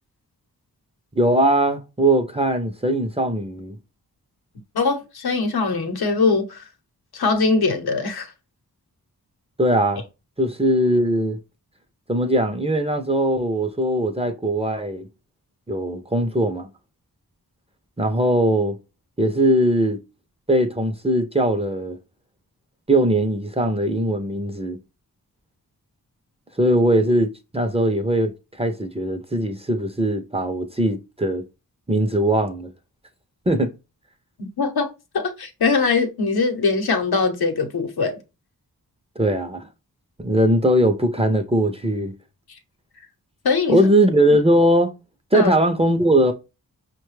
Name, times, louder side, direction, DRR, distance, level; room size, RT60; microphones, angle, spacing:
voice 1, 1.2-3.8 9.6-10.0 10.4-11.4 12.1-15.1 15.7-16.7 18.0-18.8 19.2-20.0 20.5-22.0 22.9-24.8 26.6-31.4 31.9-32.7 33.5-33.7 39.2-39.7 40.2-42.1 43.7-44.9 45.3-46.3, right 1 dB, 15° right, 0.5 m, -20 dB
voice 2, 4.7-6.6 7.1-8.3 34.4-34.9 35.1-38.2 43.4-43.9 45.3-45.5, left 4 dB, 80° left, 0.8 m, -21 dB
5.4 x 2.2 x 3.1 m
wide cardioid pair, 90°, 37 cm